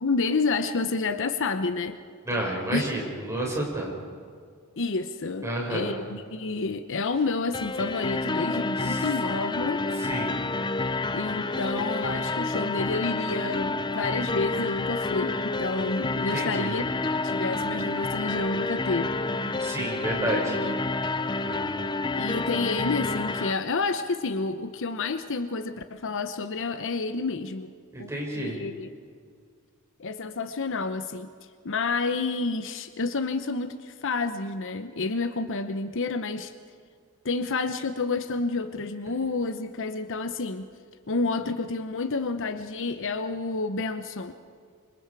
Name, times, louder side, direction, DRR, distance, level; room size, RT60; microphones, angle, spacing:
voice 1, 0.0-2.0 2.7-2.8 4.8-9.8 11.1-16.9 17.2-19.1 20.2-21.0 22.2-27.7 28.0-28.9 30.0-31.3 31.6-36.5 37.2-40.7 41.1-44.3, left 3 dB, 60° left, 9 dB, 0.9 m, -29 dB
voice 2, 2.2-3.9 5.4-6.0 8.8-9.1 10.0-10.4 16.3-16.7 19.6-20.6 21.4-21.6 27.9-28.6, right 1 dB, 15° right, -2 dB, 5.8 m, -30 dB
sound 1, 7.5-23.5, left 3 dB, 20° left, 0.6 m, -29 dB
26.5 x 25.5 x 4.8 m, 2.1 s
head